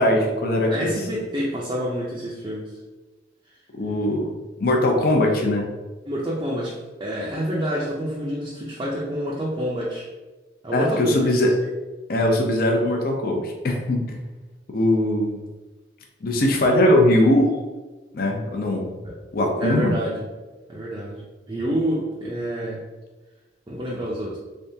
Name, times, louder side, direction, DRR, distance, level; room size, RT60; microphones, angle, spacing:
voice 1, 0.0-0.9 3.8-4.3 4.6-5.7 10.7-11.5 12.1-14.2 14.7-15.4 16.2-17.6 18.1-18.9 19.3-19.9, left 1 dB, 50° left, 1 dB, 0.6 m, -20 dB
voice 2, 0.7-2.8 6.1-10.1 10.6-11.7 19.0-19.1 19.6-20.3 20.7-22.8 23.7-24.4, equal, 25° right, -5 dB, 0.5 m, -28 dB
3.5 x 3.5 x 2.7 m, 1.2 s
head